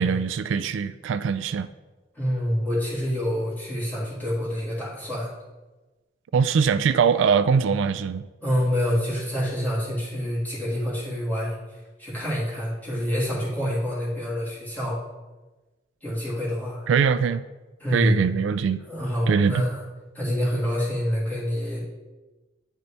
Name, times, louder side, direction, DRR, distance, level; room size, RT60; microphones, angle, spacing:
voice 1, 0.0-1.7 6.3-8.3 16.9-17.4 17.9-18.8 19.3-19.6, right 6 dB, 85° right, 0.3 m, -22 dB
voice 2, 2.2-5.3 8.4-11.6 12.0-15.0 16.0-16.9 17.8-18.2 18.9-19.8 20.1-21.8, equal, 10° left, 1.9 m, -27 dB
9.8 x 4.0 x 3.4 m
head